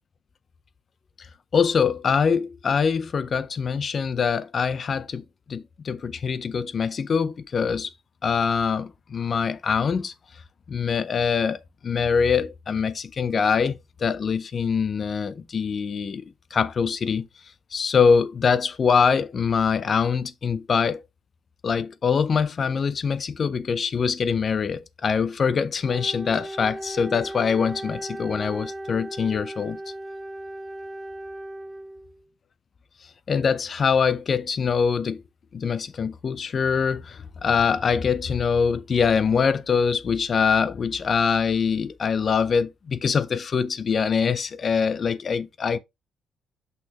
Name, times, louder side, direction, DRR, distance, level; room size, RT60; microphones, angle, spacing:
voice 1, 1.5-7.9 8.2-10.1 10.7-16.2 16.5-17.3 17.7-21.0 21.6-29.8 33.3-35.2 35.5-45.8, left 6 dB, 45° left, 0.6 m, -24 dB
Wind instrument woodwind instrument, 25.8-32.2, right 1 dB, 10° right, 0.7 m, -37 dB
6.1 x 5.9 x 2.8 m
cardioid pair, 90°, 0 cm